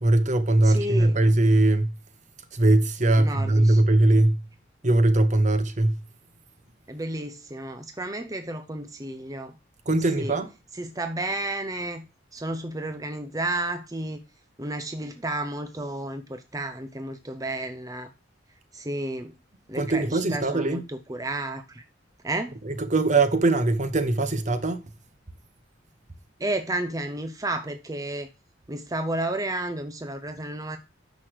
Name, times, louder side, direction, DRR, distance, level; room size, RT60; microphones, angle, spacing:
voice 1, 0.0-1.9 2.5-4.4 4.8-6.0 9.9-10.5 19.7-20.8 22.7-24.8, right 2 dB, 40° right, 1.2 m, -21 dB
voice 2, 0.6-1.2 3.2-3.8 6.9-9.5 10.2-10.4 10.7-12.0 12.3-14.2 14.6-18.1 18.7-19.3 19.7-21.8 22.2-22.5 26.4-28.3 28.7-30.8, right 1 dB, 20° right, 0.8 m, -32 dB
9.6 x 6.3 x 4.8 m
head